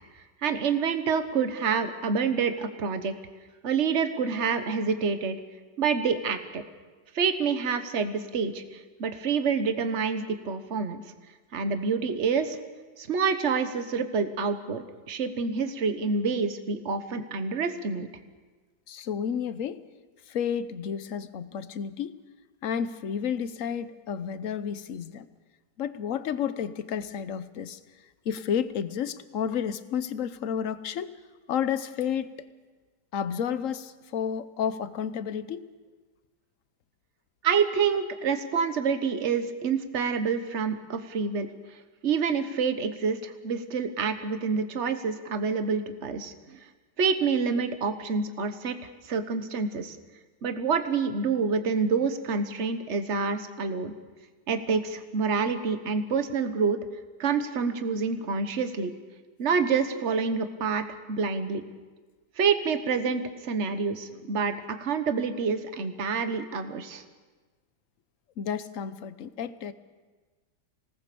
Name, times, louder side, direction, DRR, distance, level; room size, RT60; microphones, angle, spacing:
voice 1, 0.4-3.1 3.6-5.4 5.8-6.6 7.1-11.0 11.5-12.6 13.0-18.1 37.4-41.5 42.0-46.6 47.0-48.8 49.0-50.0 50.4-53.9 54.5-56.8 57.2-58.9 59.4-61.6 62.4-67.0, right 5 dB, 45° right, 9 dB, 1.5 m, -27 dB
voice 2, 18.9-19.8 20.3-22.2 22.6-25.3 25.8-27.8 28.2-31.1 31.5-32.3 33.1-35.7 68.4-69.7, left 8 dB, 55° left, 13 dB, 1.2 m, -31 dB
26.0 x 18.5 x 6.9 m, 1.3 s
omnidirectional pair, 1.8 m